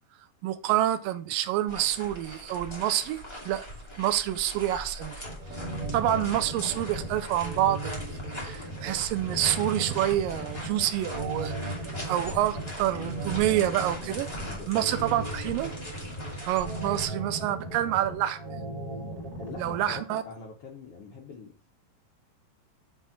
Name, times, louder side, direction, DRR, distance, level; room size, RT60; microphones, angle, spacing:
voice 1, 0.4-3.2 3.5-3.7 4.0-5.2 5.9-11.8 12.1-14.3 14.7-15.7 16.5-18.6 19.6-20.2, right 12 dB, 85° right, 2.3 m, -27 dB
sound 1, 1.7-17.1, equal, 15° left, 1.1 m, -41 dB
sound 2, 5.2-20.0, right 1 dB, 30° right, 2.2 m, -37 dB
voice 2, 14.4-15.6 19.4-21.7, left 4 dB, 80° left, 1.3 m, -44 dB
7.4 x 3.5 x 5.7 m
omnidirectional pair, 4.0 m